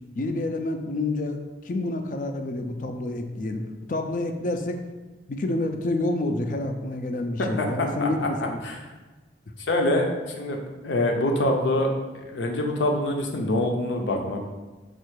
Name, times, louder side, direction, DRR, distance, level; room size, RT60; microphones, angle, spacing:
voice 1, 0.2-1.4 1.6-4.8 5.3-8.6, left 2 dB, 45° left, 6 dB, 0.4 m, -28 dB
voice 2, 8.0-8.8 9.6-10.6 10.8-11.9 12.1-14.4, left 1 dB, 90° left, 2 dB, 0.7 m, -25 dB
4.5 x 2.4 x 4.6 m, 1.2 s
head